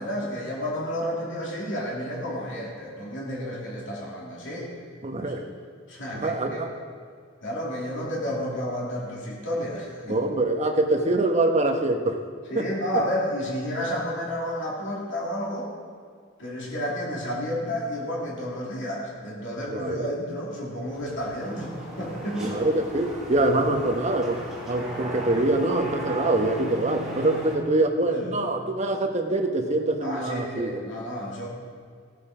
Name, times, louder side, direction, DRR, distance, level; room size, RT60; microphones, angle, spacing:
voice 1, 0.0-4.7 5.9-6.6 7.4-10.2 12.5-15.7 16.4-22.6 28.1-28.4 30.0-31.5, equal, 65° left, -5 dB, 2.7 m, -31 dB
voice 2, 5.0-5.5 6.1-6.7 10.0-12.1 12.5-12.6 19.7-20.1 22.4-30.8, right 2 dB, 35° right, 3 dB, 1.1 m, -24 dB
sound 1, 20.9-27.6, right 1 dB, 5° right, 2.7 m, -37 dB
16.5 x 8.3 x 4.9 m, 2.1 s
head